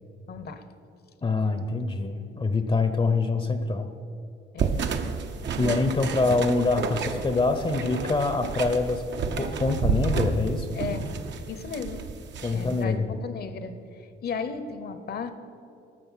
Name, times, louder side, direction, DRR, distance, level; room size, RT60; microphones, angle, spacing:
voice 1, 0.3-0.6 4.5-4.8 10.7-11.1 11.5-12.0 12.5-13.7 14.2-15.3, left 5 dB, 55° left, 10 dB, 0.9 m, -34 dB
voice 2, 1.2-3.9 5.6-9.1 9.4-10.8 12.4-13.2, left 3 dB, 25° left, 9 dB, 0.7 m, -25 dB
sound 1, 4.6-12.8, right 5 dB, 65° right, 0.8 m, -30 dB
12.5 x 6.6 x 5.7 m, 2.8 s
cardioid pair, 90°, 20 cm